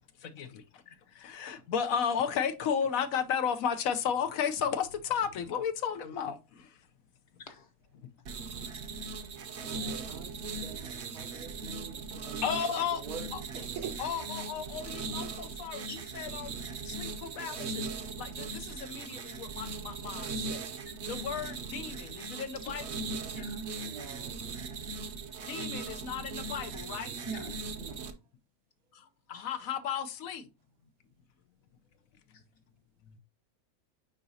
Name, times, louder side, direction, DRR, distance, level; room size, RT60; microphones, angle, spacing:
voice 1, 0.2-6.9 7.9-8.1 12.4-13.0 13.3-13.7 14.0-16.6 16.8-20.6 21.1-23.0 25.5-27.2 28.9-30.5 33.1-33.2, left 7 dB, 70° left, 1.1 m, -34 dB
sound 1, 8.3-28.1, right 4 dB, 55° right, 1.0 m, -39 dB
voice 2, 9.6-12.4 13.1-13.3 13.5-14.0 23.8-24.5 27.8-28.1, right 6 dB, 80° right, 1.5 m, -45 dB
voice 3, 23.3-23.8 27.3-27.6 29.3-29.5, right 2 dB, 55° left, 1.3 m, -42 dB
9.5 x 4.0 x 2.7 m
omnidirectional pair, 1.5 m